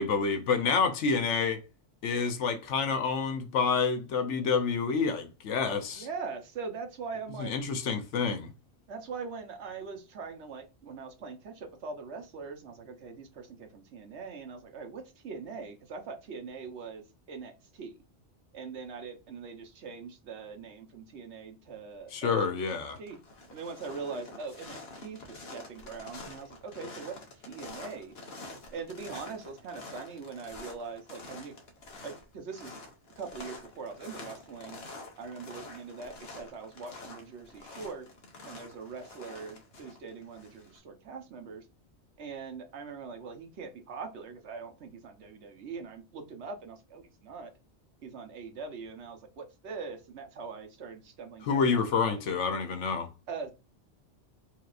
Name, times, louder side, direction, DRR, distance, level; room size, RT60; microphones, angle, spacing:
voice 1, 0.0-1.6 2.0-6.1 7.4-8.5 22.1-23.0 51.5-53.1, left 5 dB, 80° left, 1.0 m, -28 dB
voice 2, 5.9-7.5 8.9-18.0 18.5-22.5 23.0-23.2 23.5-28.2 28.7-31.5 32.0-32.8 33.2-34.9 35.2-38.1 38.4-41.6 42.2-47.5 48.0-52.1 53.3-53.5, right 5 dB, 70° right, 1.1 m, -42 dB
sound 1, 22.5-22.6 22.9-40.8, left 2 dB, 60° left, 1.1 m, -47 dB
4.6 x 3.0 x 2.4 m
omnidirectional pair, 1.2 m